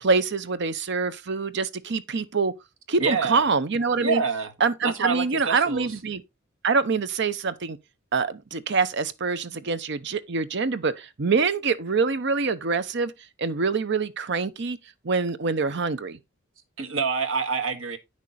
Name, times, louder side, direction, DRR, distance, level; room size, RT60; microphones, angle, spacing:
voice 1, 0.0-2.5 2.9-4.2 4.6-6.2 6.6-7.8 8.1-13.1 13.4-14.8 15.0-16.2, right 4 dB, 55° right, 0.7 m, -25 dB
voice 2, 3.0-3.4 4.0-4.5 4.8-5.9 16.8-18.0, right 5 dB, 75° right, 1.8 m, -26 dB
9.7 x 6.3 x 4.1 m
head